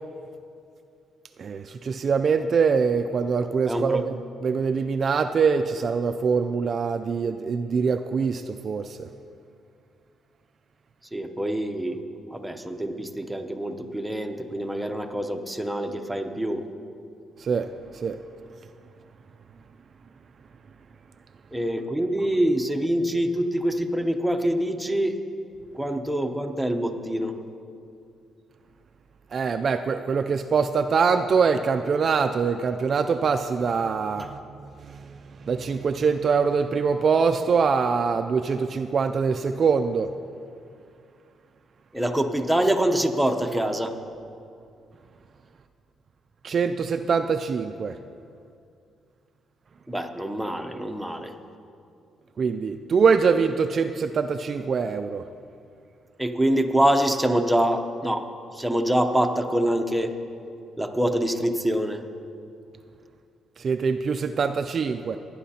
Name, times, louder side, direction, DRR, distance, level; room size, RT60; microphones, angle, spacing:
voice 1, 1.4-4.2 4.4-9.1 17.4-17.7 18.0-18.2 29.3-34.4 34.8-35.1 35.4-40.1 46.4-47.9 52.4-55.2 63.6-65.2, right 5 dB, 50° right, 8 dB, 0.3 m, -23 dB
voice 2, 3.7-4.0 11.1-12.0 12.3-16.6 21.5-25.2 25.7-27.4 41.9-43.9 49.9-51.3 56.2-58.2 58.5-60.1 60.8-62.0, right 1 dB, 5° right, 4 dB, 0.8 m, -25 dB
17.5 x 9.9 x 2.8 m, 2.5 s
cardioid pair, 90°, 0 cm